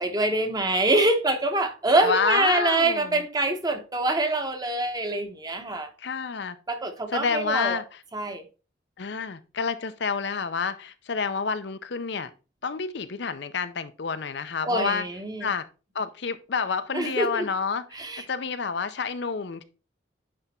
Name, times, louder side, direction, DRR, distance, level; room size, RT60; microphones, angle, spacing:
voice 1, 0.0-5.9 6.7-7.8 8.1-8.4 14.6-15.5 16.9-17.5 17.9-18.2, right 2 dB, 20° right, 1.0 m, -25 dB
voice 2, 2.0-3.2 6.0-6.6 7.1-8.0 9.0-12.3 12.6-15.1 15.4-15.7 15.9-19.6, left 5 dB, 60° left, 0.5 m, -29 dB
9.7 x 3.4 x 4.3 m
head